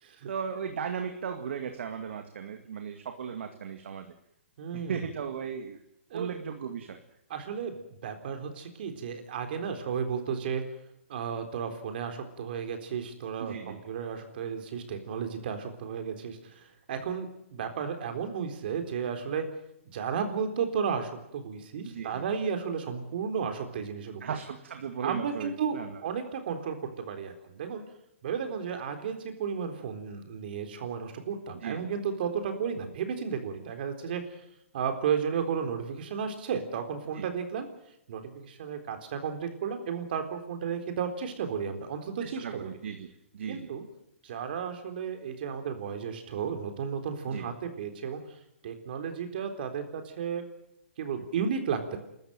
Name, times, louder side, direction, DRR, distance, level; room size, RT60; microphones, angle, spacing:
voice 1, 0.3-4.1 4.9-5.8 6.1-7.0 13.4-13.8 21.8-22.2 24.2-26.0 31.6-31.8 37.1-37.3 42.2-43.1 43.3-43.7 47.3-47.5, right 7 dB, 65° right, 6 dB, 2.2 m, -36 dB
voice 2, 4.6-5.0 6.1-6.3 7.3-10.6 11.1-19.5 19.9-24.4 25.0-27.8 28.2-34.2 34.7-37.7 38.1-42.7 43.5-43.8 44.2-48.2 48.6-50.4 51.0-52.0, right 7 dB, 50° right, 6 dB, 4.0 m, -33 dB
29.5 x 13.5 x 9.1 m, 0.81 s
hypercardioid pair, 165°, 7 cm